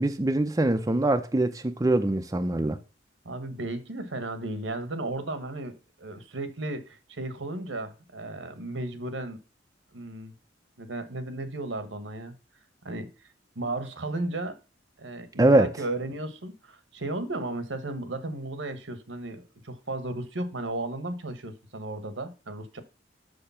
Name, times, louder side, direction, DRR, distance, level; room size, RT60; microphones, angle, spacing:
voice 1, 0.0-2.8 15.4-15.7, right 1 dB, 20° right, 0.6 m, -23 dB
voice 2, 3.2-9.4 9.9-10.3 10.8-12.3 12.8-13.1 13.5-14.5 15.0-22.8, right 2 dB, 80° right, 1.3 m, -34 dB
6.7 x 6.5 x 5.7 m
head